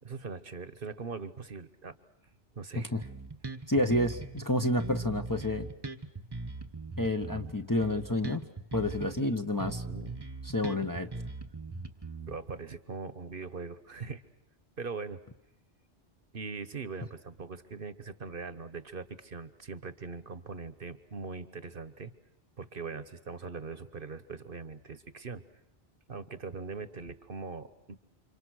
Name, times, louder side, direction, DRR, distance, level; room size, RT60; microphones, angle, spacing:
voice 1, 0.0-1.9 2.5-2.9 9.8-10.2 12.2-14.2 14.8-15.2 16.3-22.1 22.6-25.4 26.1-28.0, right 4 dB, 50° right, 13 dB, 1.3 m, -41 dB
Bass guitar, 3.0-4.5 4.8-9.3 9.6-12.6, right 3 dB, 20° right, 1.1 m, -40 dB
voice 2, 3.7-5.7 7.0-8.4 8.7-9.8 10.4-11.1, left 1 dB, 20° left, 5 dB, 1.0 m, -29 dB
29.5 x 26.5 x 6.4 m, 0.87 s
omnidirectional pair, 1.2 m